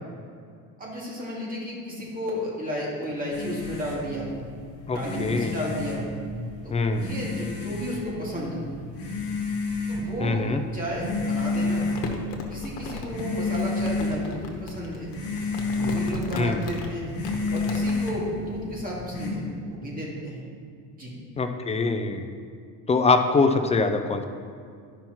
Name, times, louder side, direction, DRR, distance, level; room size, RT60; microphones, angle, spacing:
voice 1, 0.8-4.3 4.9-6.0 6.6-8.7 9.9-10.4 10.7-11.8 12.5-15.1 15.7-17.1 17.5-20.4 20.9-21.1, equal, 20° right, -4 dB, 2.0 m, -33 dB
sound 1, 3.3-19.3, left 3 dB, 35° left, 1.9 m, -31 dB
voice 2, 4.9-5.6 6.7-7.1 10.2-10.6 16.4-16.6 21.4-22.2 22.9-24.2, left 3 dB, 15° left, 6 dB, 0.3 m, -23 dB
Crumpling crinkling, 11.3-18.1, left 3 dB, 75° left, 1.2 m, -37 dB
12.0 x 5.6 x 3.0 m, 2.2 s
cardioid pair, 130°, 42 cm